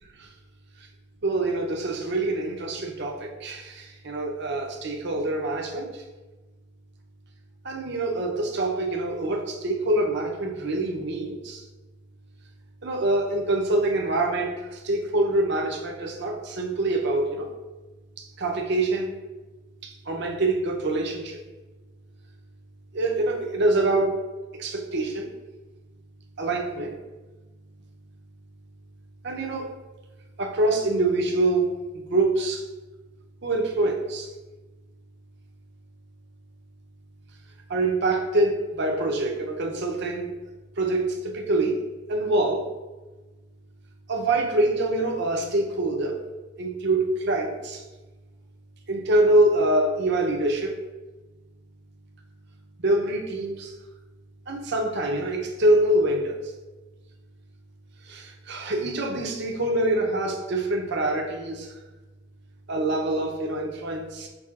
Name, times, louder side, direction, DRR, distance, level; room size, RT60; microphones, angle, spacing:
voice 1, 1.2-6.0 7.6-11.6 12.8-17.5 18.2-19.2 19.8-21.4 22.9-24.2 24.5-25.3 26.4-27.0 29.2-29.7 30.4-32.6 33.4-34.3 37.7-40.3 40.8-41.8 42.1-42.6 44.1-46.2 46.6-47.8 48.9-50.8 52.8-53.7 54.5-56.4 58.1-61.7 62.7-64.3, right 2 dB, 55° right, 2 dB, 0.6 m, -25 dB
6.1 x 3.2 x 2.4 m, 1.2 s
head